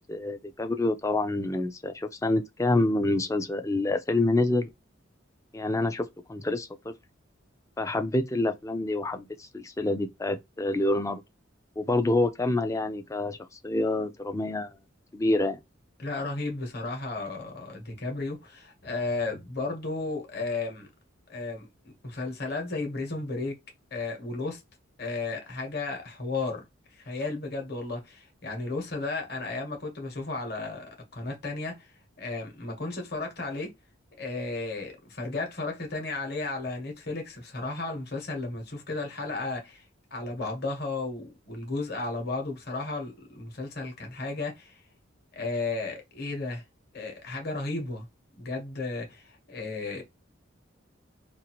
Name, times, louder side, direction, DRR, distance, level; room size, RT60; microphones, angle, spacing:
voice 1, 0.1-4.7 5.5-6.9 7.8-11.2 11.8-14.7 15.1-15.6, left 2 dB, 15° left, 0.3 m, -27 dB
voice 2, 16.0-20.9 21.3-21.6 22.0-23.6 23.9-24.6 25.0-26.6 26.9-31.9 32.2-33.7 34.2-39.8 40.1-44.8 45.3-46.6 46.9-48.1 48.4-50.0, left 3 dB, 50° left, 1.1 m, -34 dB
2.6 x 2.5 x 2.9 m
head